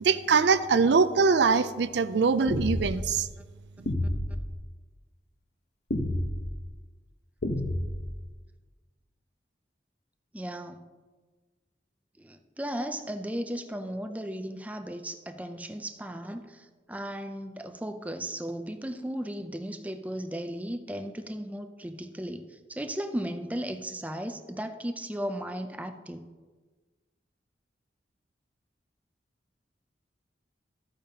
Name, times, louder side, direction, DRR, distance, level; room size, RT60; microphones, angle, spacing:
voice 1, 0.0-3.3, right 5 dB, 80° right, 13 dB, 0.4 m, -23 dB
sound 1, 2.5-3.0 3.9-4.4 5.9-6.5 7.4-8.1, left 1 dB, 65° left, 0.9 m, -29 dB
voice 2, 10.3-10.9 12.2-26.3, right 1 dB, 10° right, 7 dB, 0.5 m, -36 dB
13.0 x 8.7 x 2.9 m, 1.3 s
head